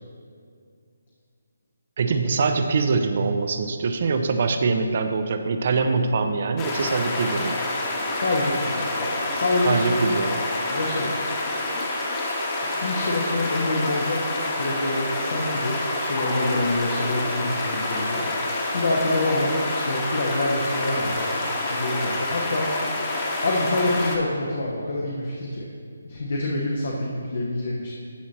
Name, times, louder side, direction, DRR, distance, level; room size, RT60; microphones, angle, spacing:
voice 1, 2.0-7.6 9.6-10.3, right 4 dB, 50° right, 7 dB, 0.6 m, -23 dB
sound 1, 6.6-24.2, left 2 dB, 25° left, 1.2 m, -27 dB
voice 2, 8.2-8.9 9.3-10.1 10.7-11.1 12.6-14.2 14.6-21.4 21.7-22.7 23.4-25.7 26.0-27.9, left 2 dB, 60° left, -3 dB, 1.0 m, -26 dB
11.5 x 6.1 x 2.9 m, 2.3 s
figure-of-eight pair, 150°, 0 cm